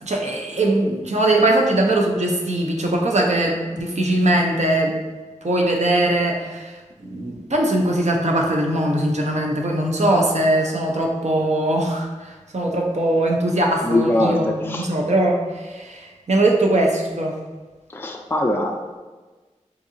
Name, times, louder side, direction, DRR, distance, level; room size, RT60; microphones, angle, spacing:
voice 1, 0.0-4.9 5.4-6.7 7.0-17.3, right 1 dB, 65° right, 0 dB, 0.6 m, -21 dB
voice 2, 13.8-14.9 17.9-19.0, left 1 dB, 15° left, 2 dB, 0.3 m, -22 dB
3.9 x 2.7 x 2.6 m, 1.3 s
wide cardioid pair, 40°, 13 cm